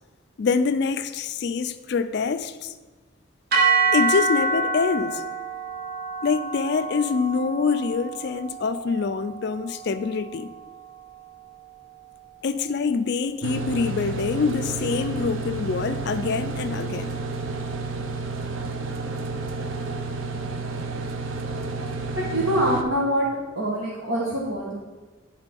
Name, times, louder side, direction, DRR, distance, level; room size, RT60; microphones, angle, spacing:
voice 1, 0.4-2.7 3.9-5.2 6.2-10.5 12.4-17.1, left 5 dB, 55° left, 11 dB, 0.4 m, -25 dB
sound 1, 3.5-11.8, right 4 dB, 50° right, 0.9 m, -27 dB
sound 2, 13.4-22.8, right 3 dB, 90° right, 0.6 m, -31 dB
voice 2, 22.1-23.3 23.6-24.8, equal, 70° right, -4 dB, 1.2 m, -24 dB
10.0 x 3.7 x 5.2 m, 1.3 s
head